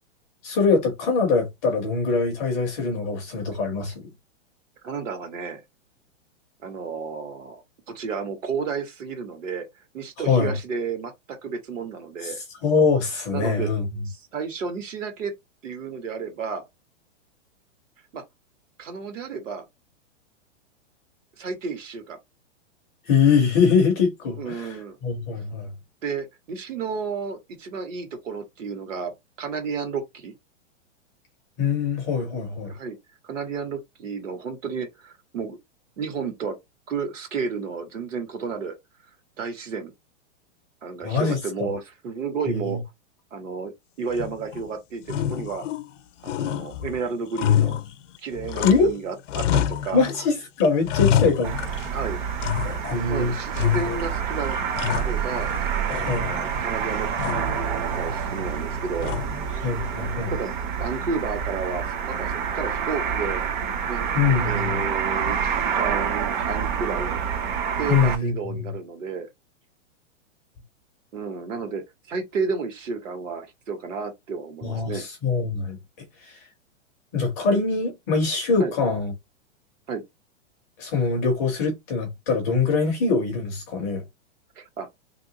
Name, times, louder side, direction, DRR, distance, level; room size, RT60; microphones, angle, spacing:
voice 1, 0.4-3.9 10.2-10.6 12.2-12.3 12.6-14.0 23.1-24.8 25.0-25.7 31.6-32.7 41.0-41.7 42.5-42.8 48.6-48.9 49.9-51.6 52.9-53.3 56.1-56.3 59.6-60.3 64.1-64.8 67.9-68.7 74.6-75.8 76.2-76.4 77.1-79.1 80.8-84.0, left 4 dB, 15° left, 0.4 m, -23 dB
voice 2, 4.8-5.6 6.6-9.7 9.9-11.1 11.4-12.4 13.3-13.7 14.0-15.3 15.6-16.6 18.1-18.2 18.8-19.6 21.4-22.2 24.3-25.0 26.0-29.1 29.4-30.3 32.2-32.3 32.7-33.0 33.2-35.6 36.0-36.6 36.9-38.8 39.4-39.9 40.8-42.8 43.3-43.7 44.0-45.6 46.2-47.8 48.2-50.0 51.9-52.2 53.1-55.5 56.0-59.2 59.6-59.7 60.3-63.4 63.9-64.0 64.4-67.2 67.8-69.3 71.1-71.8 72.1-75.0 78.6-78.7 79.9-80.0 84.6-84.9, right 5 dB, 80° right, 1.5 m, -32 dB
sound 1, 44.1-44.7 45.0-46.0 46.2-49.0 49.3-50.3 50.6-52.0 52.4-53.1 53.5-54.2 54.5-55.6 55.9-56.6 57.2-57.6 59.0-59.5, left 10 dB, 75° left, 0.5 m, -27 dB
sound 2, 51.4-68.2, right 7 dB, 40° right, 0.6 m, -27 dB
2.9 x 2.8 x 2.7 m
hypercardioid pair, 155°, 37 cm